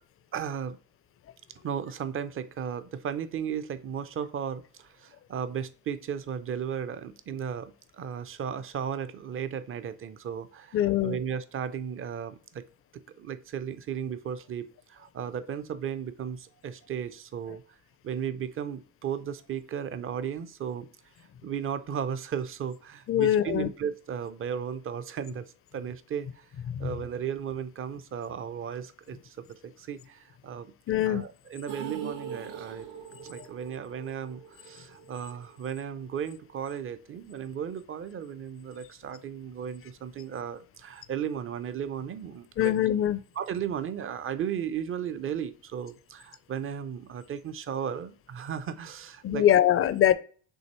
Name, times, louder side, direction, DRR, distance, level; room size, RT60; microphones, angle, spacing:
voice 1, 0.3-0.8 1.6-12.6 12.9-17.6 18.0-20.9 21.4-26.5 26.8-30.7 31.1-32.9 33.2-42.8 43.4-49.7, right 8 dB, 35° right, 0.5 m, -35 dB
voice 2, 10.7-11.2 23.1-23.7 26.8-26.9 30.9-31.2 42.6-43.2 49.2-50.1, left 11 dB, 35° left, 0.5 m, -23 dB
sound 1, 31.7-35.8 36.1-36.2 36.5-36.6, right 7 dB, 75° right, 0.9 m, -42 dB
6.3 x 2.6 x 3.0 m
supercardioid pair, 75°, 40 cm